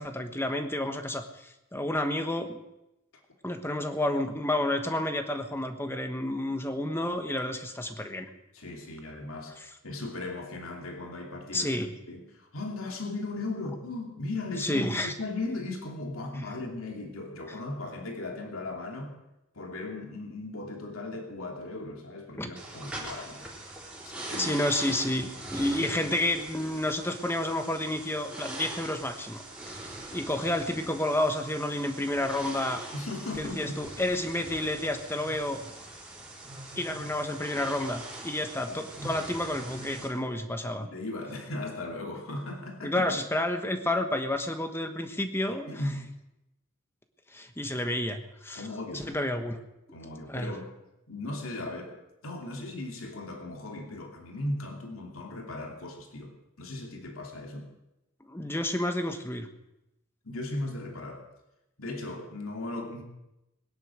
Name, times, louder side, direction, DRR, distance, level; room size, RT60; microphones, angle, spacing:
voice 1, 0.0-2.6 3.4-8.3 11.5-11.9 14.6-15.1 22.4-22.5 24.4-32.8 33.4-35.6 36.8-40.9 42.8-45.7 47.3-48.7 48.9-49.6 50.3-50.5 58.2-59.5, left 1 dB, 10° left, 7 dB, 1.2 m, -30 dB
voice 2, 8.5-11.7 12.1-19.1 19.5-23.8 24.0-24.5 32.9-33.8 38.7-38.8 40.8-43.0 45.5-46.1 48.5-49.1 49.9-50.7 51.1-52.0 52.2-57.7 60.2-61.3 61.8-63.0, left 2 dB, 90° left, 1 dB, 2.8 m, -37 dB
sound 1, 22.6-40.1, right 2 dB, 5° right, 3.6 m, -42 dB
20.5 x 10.5 x 6.3 m, 0.91 s
head